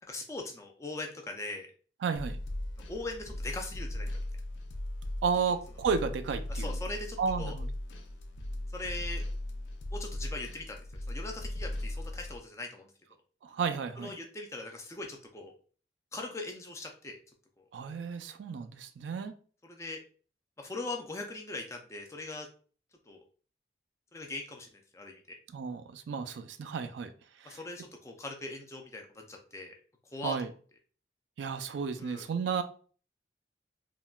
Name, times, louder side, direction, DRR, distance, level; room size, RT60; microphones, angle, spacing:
voice 1, 0.1-1.7 2.9-4.1 6.5-7.6 8.7-9.2 9.9-10.8 11.1-12.9 14.0-15.5 16.1-17.2 19.6-20.0 20.6-22.5 23.1-23.2 24.1-24.7 24.9-25.4 27.4-29.8 30.1-30.4 32.0-32.3, left 2 dB, 15° left, 0.4 m, -40 dB
voice 2, 2.0-2.4 5.2-6.8 7.2-7.7 13.4-14.2 17.7-19.3 25.5-27.1 27.4-27.6 30.2-30.5 31.4-32.6, right 6 dB, 80° right, 0.3 m, -33 dB
sound 1, 2.2-12.4, left 1 dB, 85° left, 0.5 m, -38 dB
3.7 x 2.2 x 2.3 m
head